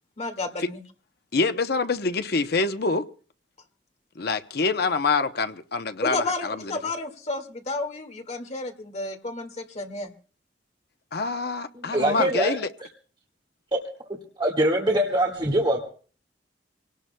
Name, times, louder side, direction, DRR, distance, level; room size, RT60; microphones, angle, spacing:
voice 1, 0.2-0.8 6.0-10.1, left 2 dB, 40° left, 2.0 m, -31 dB
voice 2, 1.3-3.0 4.2-6.7 11.1-12.7, left 4 dB, 60° left, 0.8 m, -26 dB
voice 3, 11.9-12.6 13.7-13.8 14.4-15.8, right 1 dB, 30° right, 1.7 m, -23 dB
25.5 x 18.0 x 2.2 m
head